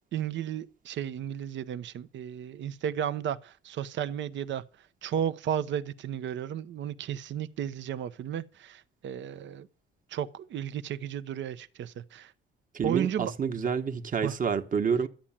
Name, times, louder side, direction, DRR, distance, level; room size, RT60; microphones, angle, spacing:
voice 1, 0.1-4.6 5.0-9.7 10.1-12.3 12.8-13.3 14.2-14.3, right 9 dB, 70° right, 0.8 m, -33 dB
voice 2, 12.7-15.1, right 6 dB, 45° right, 1.4 m, -28 dB
12.5 x 8.8 x 7.4 m
cardioid pair, 90°, 20 cm